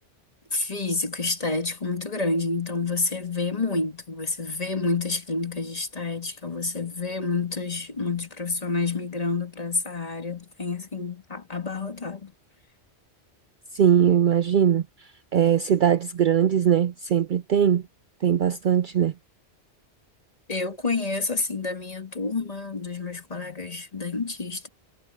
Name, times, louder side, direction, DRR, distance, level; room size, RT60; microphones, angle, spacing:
voice 1, 0.5-12.3 20.5-24.7, left 3 dB, 35° left, 1.7 m, -29 dB
voice 2, 13.7-14.8 15.3-17.8 18.2-19.1, right 9 dB, 60° right, 0.6 m, -20 dB
omnidirectional pair, 1.1 m